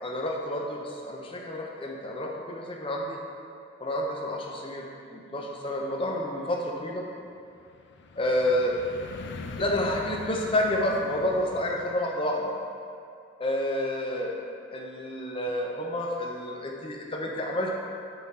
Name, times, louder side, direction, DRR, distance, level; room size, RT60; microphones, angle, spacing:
voice 1, 0.0-3.2 3.8-4.9 5.1-7.0 8.2-8.8 9.6-12.5 13.4-14.4 14.7-17.8, left 1 dB, 25° left, -1 dB, 0.7 m, -29 dB
sound 1, 5.6-11.9, left 3 dB, 60° left, 0.4 m, -43 dB
8.0 x 3.8 x 4.2 m, 2.5 s
head